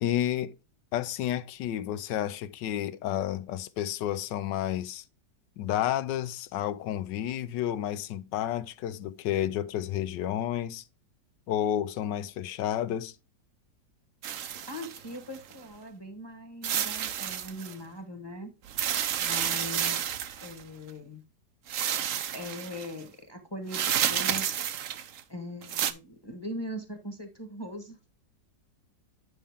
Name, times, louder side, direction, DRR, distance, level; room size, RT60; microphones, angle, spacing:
voice 1, 0.0-0.5 0.9-5.0 5.6-10.8 11.5-13.1, left 11 dB, 80° left, 1.3 m, -31 dB
sound 1, 14.2-15.5 16.6-17.7 18.7-20.6 21.7-22.9 23.7-25.2 25.6-25.9, right 9 dB, 60° right, 0.9 m, -30 dB
voice 2, 14.7-18.5 19.2-20.0 20.4-21.2 22.3-24.5 25.3-28.0, left 1 dB, 15° left, 1.2 m, -40 dB
9.7 x 5.6 x 3.5 m
omnidirectional pair, 1.9 m